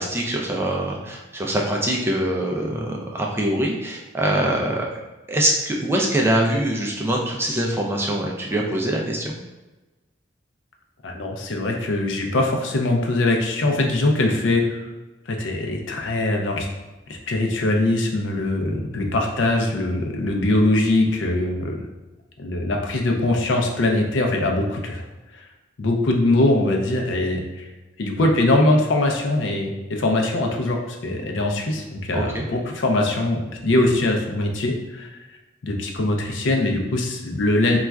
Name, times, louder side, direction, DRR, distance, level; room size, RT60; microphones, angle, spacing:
voice 1, 0.0-4.9 5.3-9.4 32.1-32.4, right 1 dB, 15° right, -1 dB, 0.3 m, -23 dB
voice 2, 11.0-14.8 15.3-16.7 17.1-21.8 22.4-25.0 25.3-25.4 25.8-27.7 28.0-35.1 35.6-37.8, left 2 dB, 80° left, 2 dB, 0.5 m, -22 dB
4.1 x 2.3 x 2.3 m, 1.1 s
head